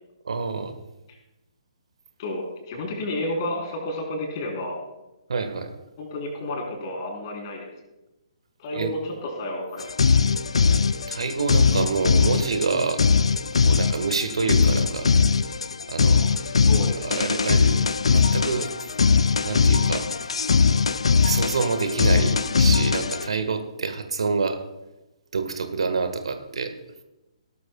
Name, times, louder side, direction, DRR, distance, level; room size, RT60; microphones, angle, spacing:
voice 1, 0.2-0.8 5.3-5.7 8.7-8.9 11.1-13.0 13.6-15.1 15.9-16.2 17.0-17.8 18.1-18.7 19.4-20.1 21.2-24.6 25.3-26.7, right 4 dB, 60° right, 8 dB, 1.3 m, -27 dB
voice 2, 2.2-4.8 6.0-7.7 8.6-9.8 16.1-17.3, left 1 dB, 35° left, 1 dB, 3.5 m, -31 dB
sound 1, 9.8-23.3, left 5 dB, 65° left, 0.4 m, -21 dB
17.5 x 12.5 x 2.2 m, 0.98 s
figure-of-eight pair, 130°, 3 cm